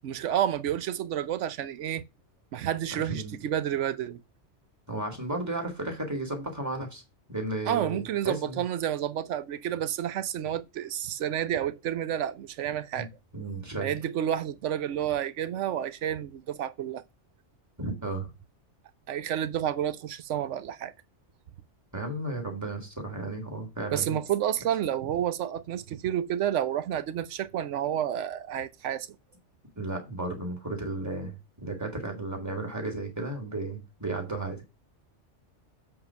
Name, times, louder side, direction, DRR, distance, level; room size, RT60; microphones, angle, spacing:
voice 1, 0.0-2.0 2.5-4.2 7.7-13.1 13.8-17.0 19.1-20.9 23.9-29.1, right 10 dB, 80° right, 1.0 m, -30 dB
voice 2, 3.0-3.4 4.9-7.0 7.3-8.6 13.0-13.1 13.3-13.9 17.8-18.3 21.9-24.2 29.8-34.6, right 2 dB, 15° right, 2.1 m, -34 dB
7.7 x 3.8 x 5.7 m
omnidirectional pair, 1.2 m